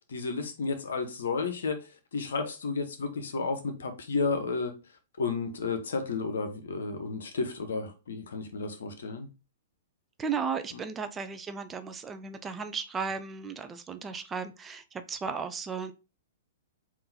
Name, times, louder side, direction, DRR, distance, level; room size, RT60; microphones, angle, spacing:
voice 1, 0.1-4.7 5.2-9.3 10.7-10.8, left 4 dB, 65° left, 0.8 m, -32 dB
voice 2, 10.2-15.9, right 5 dB, 15° right, 0.4 m, -35 dB
3.8 x 2.6 x 4.0 m
figure-of-eight pair, 110°, 0 cm